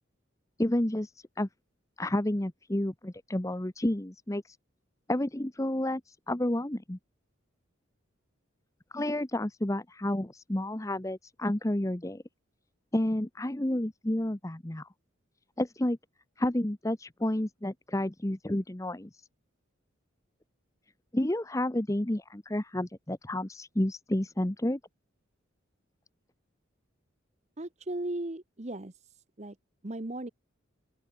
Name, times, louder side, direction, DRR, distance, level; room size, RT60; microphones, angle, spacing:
voice 1, 0.6-1.5 2.0-4.6 5.1-7.0 8.9-12.2 12.9-14.9 15.6-16.0 16.4-19.3 21.1-24.8, left 1 dB, 15° left, 0.8 m, -30 dB
voice 2, 27.6-29.6 29.8-30.3, right 1 dB, 35° right, 1.0 m, -37 dB
open air
head